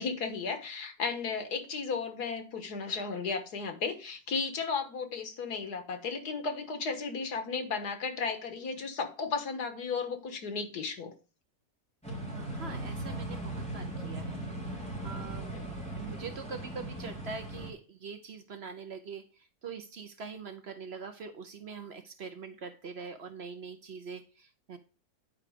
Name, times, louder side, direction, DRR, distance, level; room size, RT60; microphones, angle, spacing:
voice 1, 0.0-11.1 15.5-15.7, left 5 dB, 85° left, 6 dB, 1.9 m, -34 dB
sound 1, 12.0-17.7, right 1 dB, 5° left, 3.1 m, -38 dB
voice 2, 12.2-14.4 15.0-15.5 16.0-24.8, right 5 dB, 50° right, 8 dB, 0.9 m, -43 dB
9.7 x 4.8 x 5.1 m, 0.34 s
omnidirectional pair, 1.6 m